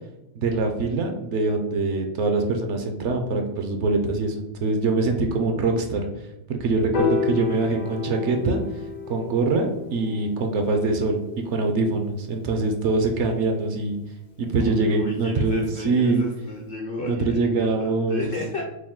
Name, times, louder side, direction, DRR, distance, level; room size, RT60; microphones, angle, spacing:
voice 1, 0.4-6.0 6.6-8.6 9.1-14.0 14.4-16.2 17.0-18.3, right 3 dB, 65° right, 4 dB, 0.8 m, -23 dB
Piano, 6.9-13.2, left 6 dB, 80° left, 1.4 m, -32 dB
voice 2, 14.6-18.6, left 2 dB, 60° left, 1 dB, 0.6 m, -33 dB
4.6 x 2.2 x 3.6 m, 0.89 s
omnidirectional pair, 1.4 m